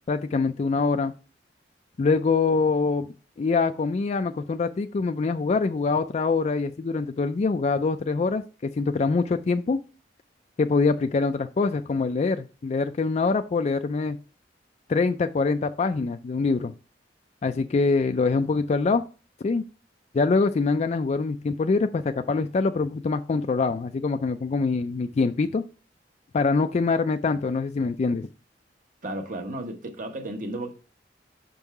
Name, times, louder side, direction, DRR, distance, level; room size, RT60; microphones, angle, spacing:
voice 1, 0.1-1.1 2.0-9.8 10.6-14.2 14.9-16.7 17.4-19.0 19.4-19.6 20.1-25.6 26.3-28.3, left 4 dB, 40° left, 0.3 m, -24 dB
voice 2, 29.0-30.7, right 1 dB, 45° right, 1.0 m, -33 dB
5.5 x 5.3 x 4.6 m
head